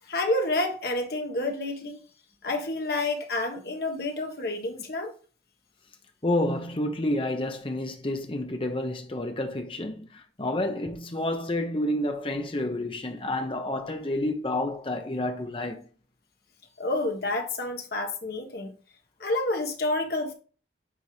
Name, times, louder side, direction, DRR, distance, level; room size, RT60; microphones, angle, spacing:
voice 1, 0.1-2.0 2.4-5.1 16.8-18.7 19.2-20.3, left 2 dB, 55° left, 1.3 m, -29 dB
voice 2, 6.2-15.8, left 1 dB, 30° left, 0.9 m, -29 dB
9.4 x 3.7 x 3.2 m
head